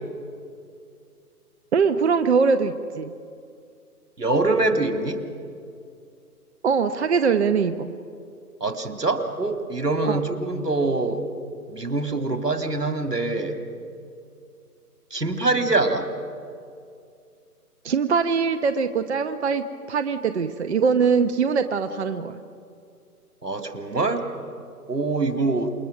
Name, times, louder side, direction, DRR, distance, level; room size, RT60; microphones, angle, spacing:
voice 1, 1.7-3.1 6.6-7.9 10.1-10.2 17.8-22.3, right 5 dB, 45° right, 10 dB, 0.9 m, -22 dB
voice 2, 4.2-5.2 8.6-11.2 11.7-13.6 15.1-16.1 23.4-24.3 24.9-25.7, right 2 dB, 85° right, 6 dB, 2.4 m, -24 dB
28.0 x 21.0 x 6.2 m, 2.4 s
figure-of-eight pair, 140°, 46 cm